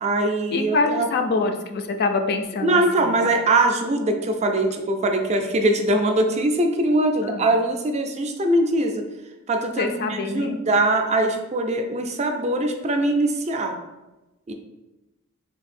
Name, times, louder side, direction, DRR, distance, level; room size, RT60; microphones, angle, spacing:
voice 1, 0.0-1.1 2.6-9.0 9.5-13.8 14.5-14.6, right 2 dB, 30° right, 4 dB, 0.4 m, -22 dB
voice 2, 0.5-3.4 7.2-7.5 9.8-10.6, left 3 dB, 45° left, 6 dB, 0.3 m, -25 dB
3.4 x 2.6 x 4.1 m, 1.0 s
head